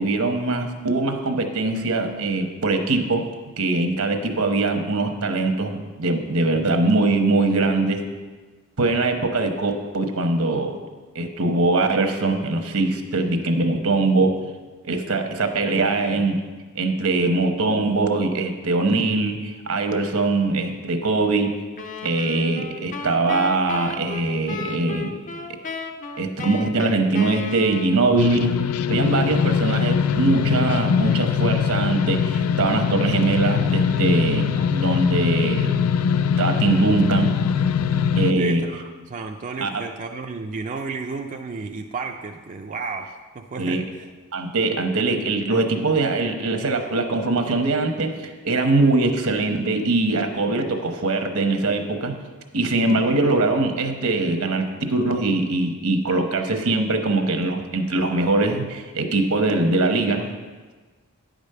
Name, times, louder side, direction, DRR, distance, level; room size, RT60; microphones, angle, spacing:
voice 1, 0.0-3.3 3.6-8.0 8.8-10.8 11.1-14.4 14.8-16.4 16.7-21.5 22.0-25.2 26.2-28.5 28.9-34.4 34.7-35.8 36.4-37.4 38.2-38.6 39.6-39.7 43.6-43.8 44.3-48.1 48.4-52.2 52.5-60.3, right 2 dB, 75° right, 5 dB, 1.0 m, -22 dB
sound 1, 21.8-28.4, left 3 dB, 35° left, 0.7 m, -34 dB
sound 2, 28.2-38.3, left 7 dB, 80° left, 0.4 m, -22 dB
voice 2, 38.4-44.0, right 4 dB, 35° right, 2 dB, 0.4 m, -33 dB
9.7 x 5.1 x 6.6 m, 1.4 s
head